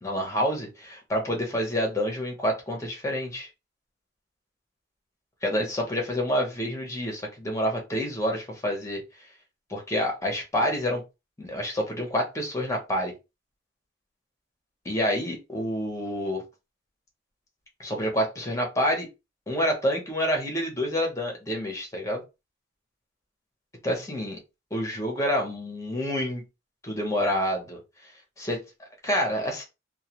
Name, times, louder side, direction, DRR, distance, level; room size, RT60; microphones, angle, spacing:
voice 1, 0.0-3.5 5.4-9.0 9.7-11.0 11.4-13.1 14.8-16.4 17.8-19.1 19.5-22.2 23.8-24.4 24.7-26.4 26.8-27.8 28.4-29.6, equal, 15° left, 0.8 m, -28 dB
2.3 x 2.3 x 2.9 m
head